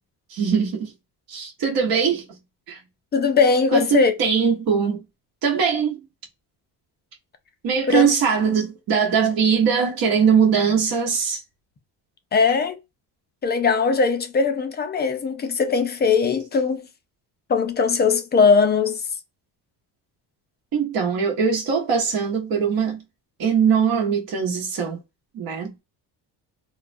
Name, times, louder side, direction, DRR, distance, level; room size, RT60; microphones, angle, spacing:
voice 1, 0.3-0.9 1.3-2.4 2.7-2.8 3.7-5.0 5.4-6.0 7.6-11.4 20.7-23.0 23.4-25.0 25.3-25.7, right 6 dB, 55° right, 1.0 m, -21 dB
voice 2, 3.1-4.1 7.9-8.1 12.3-12.8 13.4-16.9 17.5-19.1, left 5 dB, 25° left, 0.4 m, -20 dB
2.3 x 2.2 x 2.5 m
cardioid pair, 100°, 42 cm